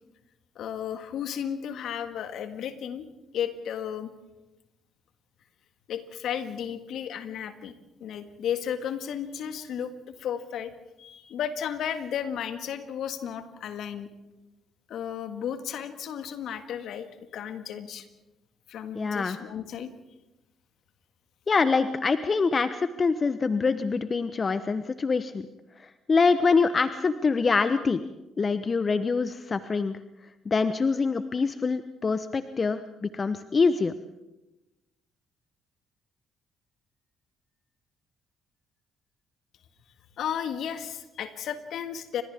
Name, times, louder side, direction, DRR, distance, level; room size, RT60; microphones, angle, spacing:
voice 1, 0.6-3.1 3.3-4.1 5.9-7.7 8.0-9.9 10.2-10.7 11.0-14.1 14.9-18.1 18.7-19.9 40.2-42.2, left 9 dB, 65° left, 9 dB, 1.9 m, -33 dB
voice 2, 18.9-19.4 21.5-25.5 25.8-28.0 28.4-30.0 30.5-33.9, left 4 dB, 40° left, 12 dB, 1.0 m, -25 dB
29.5 x 25.5 x 3.6 m, 1.0 s
hypercardioid pair, 50°, 0 cm